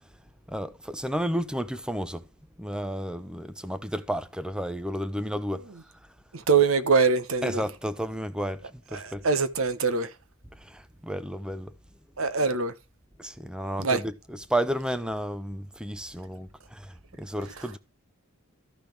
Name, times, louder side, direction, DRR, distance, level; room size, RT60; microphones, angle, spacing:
voice 1, 0.5-2.2 2.6-5.6 7.4-9.2 10.6-11.7 13.2-17.8, equal, 5° right, 0.8 m, -32 dB
voice 2, 6.5-7.6 8.9-10.1 12.2-12.7 13.8-14.0, right 5 dB, 85° right, 1.1 m, -23 dB
14.0 x 5.9 x 3.3 m
head